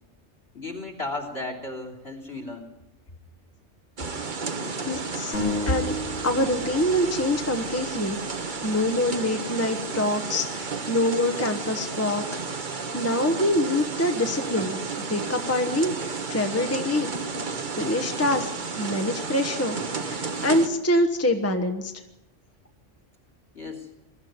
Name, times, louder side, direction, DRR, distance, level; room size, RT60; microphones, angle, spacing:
voice 1, 0.5-2.7 23.5-23.9, left 2 dB, 60° left, 5 dB, 3.7 m, -35 dB
sound 1, 4.0-20.7, right 4 dB, 45° right, 1.3 m, -32 dB
voice 2, 4.9-5.3 5.7-5.9 6.2-8.2 8.6-14.8 15.1-15.9 16.3-17.1 17.8-18.5 18.8-21.9, left 1 dB, 15° left, 5 dB, 1.2 m, -25 dB
sound 2, 5.3-8.9, left 2 dB, 85° left, 4.8 m, -34 dB
21.5 x 13.0 x 9.5 m, 0.98 s
omnidirectional pair, 1.2 m